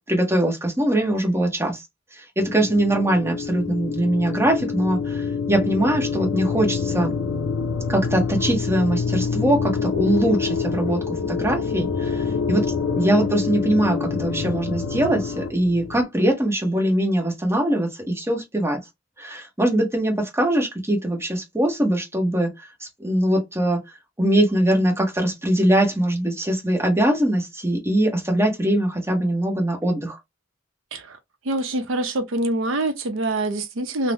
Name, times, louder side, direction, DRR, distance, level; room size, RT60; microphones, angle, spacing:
voice 1, 0.1-1.8 2.2-7.1 7.9-11.0 11.3-12.6 12.9-18.8 19.2-22.7 23.0-23.8 24.2-30.2, right 1 dB, 15° right, 0.9 m, -22 dB
sound 1, 2.4-16.0, left 5 dB, 85° left, 0.5 m, -26 dB
voice 2, 31.5-34.1, right 2 dB, 70° right, 0.6 m, -25 dB
2.7 x 2.0 x 3.2 m
head